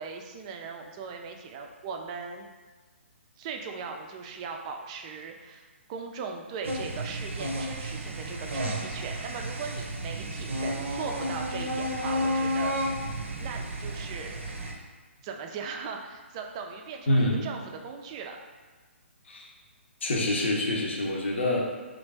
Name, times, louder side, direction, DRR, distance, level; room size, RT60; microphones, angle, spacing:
voice 1, 0.0-2.5 3.4-13.1 13.4-14.4 15.2-18.4, right 5 dB, 30° right, 3 dB, 0.3 m, -39 dB
sound 1, 6.6-14.7, equal, 75° right, 0.6 m, -32 dB
voice 2, 17.1-17.5 19.2-19.5 20.0-21.6, left 1 dB, 60° left, -1 dB, 0.7 m, -26 dB
3.1 x 2.5 x 3.3 m, 1.3 s
figure-of-eight pair, 135°, 7 cm